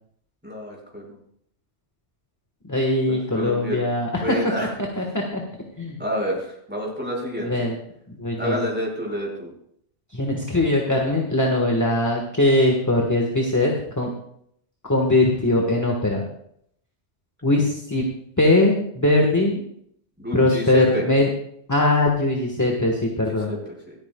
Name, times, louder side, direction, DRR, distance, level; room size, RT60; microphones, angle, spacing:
voice 1, 0.4-1.2 3.1-3.9 4.2-4.7 6.0-7.7 8.4-9.5 20.2-21.0 23.5-23.9, equal, 10° right, -2 dB, 5.0 m, -29 dB
voice 2, 2.6-4.4 5.0-5.4 5.8-6.0 7.4-7.7 8.1-8.6 10.1-14.1 14.8-16.2 17.4-18.1 18.4-19.6 20.3-21.3 21.7-23.5, left 2 dB, 15° left, 0 dB, 1.3 m, -21 dB
26.0 x 9.1 x 2.3 m, 0.69 s
omnidirectional pair, 1.2 m